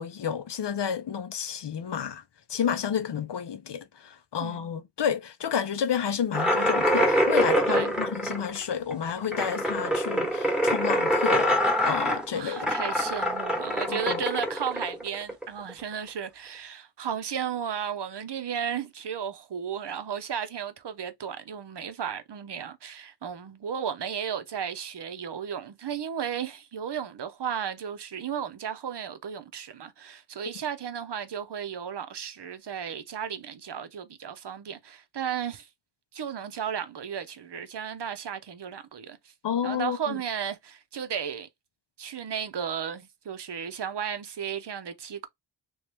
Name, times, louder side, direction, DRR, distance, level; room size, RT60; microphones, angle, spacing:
voice 1, 0.0-2.2 2.5-11.5 11.9-12.7 13.9-14.2 39.4-40.2, left 8 dB, 60° left, 0.7 m, -30 dB
sound 1, 6.3-15.7, equal, ahead, 1.1 m, -25 dB
voice 2, 12.3-35.7 36.1-39.2 39.6-41.5 42.0-45.3, right 8 dB, 60° right, 0.7 m, -34 dB
3.1 x 3.0 x 3.3 m
wide cardioid pair, 90°, 48 cm